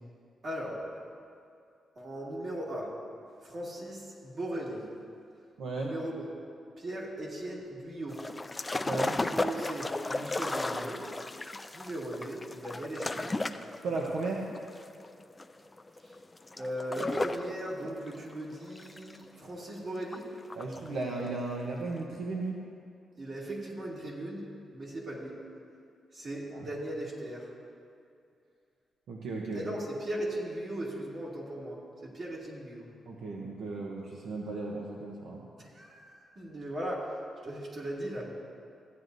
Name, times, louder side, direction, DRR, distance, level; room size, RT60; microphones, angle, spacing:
voice 1, 0.4-0.8 2.0-2.9 3.4-4.9 5.8-6.2 6.8-8.2 9.2-11.1 11.7-13.4 16.0-16.1 16.5-20.3 23.2-24.4 24.7-25.4 26.1-27.5 29.5-32.9 35.6-37.1 37.4-38.3, right 1 dB, 50° right, -4 dB, 2.3 m, -38 dB
voice 2, 5.6-5.9 8.8-9.2 13.8-14.4 20.5-22.6 26.5-26.7 29.1-29.7 33.1-35.4, right 3 dB, 85° right, -2 dB, 0.9 m, -35 dB
sound 1, 8.1-17.5 17.8-19.6 20.0-20.9 21.2-21.3, left 2 dB, 20° left, 0.4 m, -35 dB
15.5 x 9.4 x 2.6 m, 2.4 s
cardioid pair, 110°, 0 cm